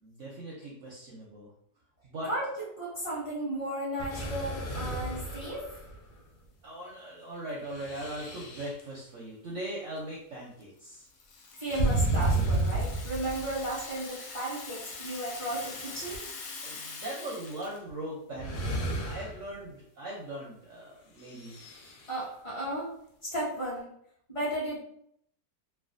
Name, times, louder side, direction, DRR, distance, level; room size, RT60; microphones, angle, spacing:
voice 1, 0.0-1.5 2.0-2.3 6.6-11.1 16.6-21.5, right 1 dB, 65° right, -4 dB, 0.8 m, -40 dB
voice 2, 2.8-5.6 11.6-16.2 22.1-22.9 23.2-23.8 24.3-24.8, right 1 dB, 20° left, -8 dB, 1.2 m, -34 dB
sound 1, 4.0-6.2 7.6-8.8 11.7-13.7 14.9-15.0 15.6-16.2 17.8-17.9 18.3-19.5 21.2-22.1, right 2 dB, 85° left, 1.3 m, -32 dB
Rattle (instrument), 10.9-17.8, left 4 dB, 70° left, 0.9 m, -43 dB
3.2 x 2.4 x 2.5 m, 0.70 s
omnidirectional pair, 1.9 m